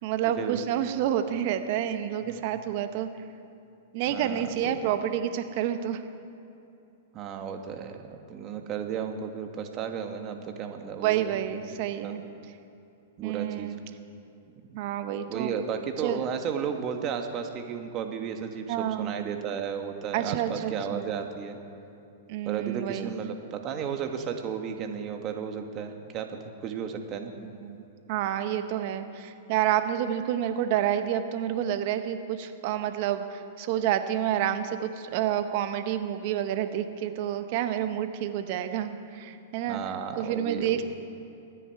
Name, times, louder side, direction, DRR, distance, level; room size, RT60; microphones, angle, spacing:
voice 1, 0.0-3.1 3.9-6.0 11.0-12.2 13.2-13.8 14.7-15.5 16.0-16.2 18.7-19.2 20.1-21.1 22.3-23.1 27.6-27.7 28.1-39.8 40.2-40.8, right 10 dB, 50° right, 9 dB, 0.9 m, -29 dB
voice 2, 4.0-4.8 7.1-11.3 11.7-12.1 13.2-13.7 15.3-21.6 22.4-27.3 39.7-40.8, right 7 dB, 35° right, 5 dB, 1.5 m, -34 dB
24.0 x 9.9 x 4.7 m, 2.8 s
hypercardioid pair, 125°, 0 cm